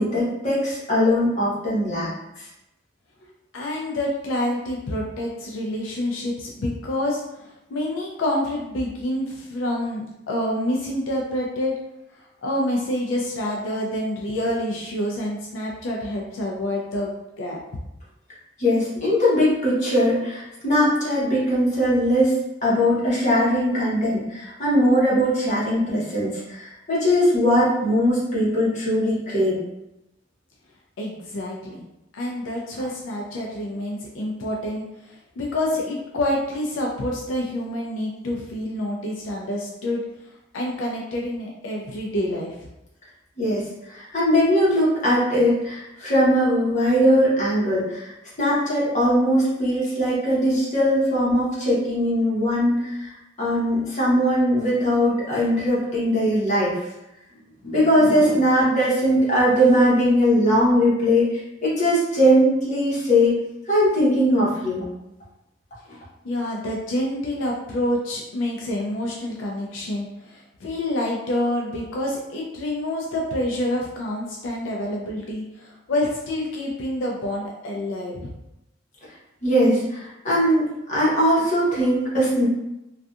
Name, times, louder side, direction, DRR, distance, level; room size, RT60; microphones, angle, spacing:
voice 1, 0.0-2.5 18.6-22.3 22.6-29.6 43.4-48.1 48.4-53.1 53.4-56.7 57.6-63.3 63.7-64.8 79.4-82.5, equal, 40° left, -7 dB, 0.9 m, -20 dB
voice 2, 3.5-7.2 7.7-11.7 12.4-17.6 31.0-31.8 32.1-40.0 40.5-42.6 66.2-78.3, left 1 dB, 85° left, -2 dB, 0.4 m, -27 dB
2.6 x 2.3 x 2.3 m, 0.91 s
head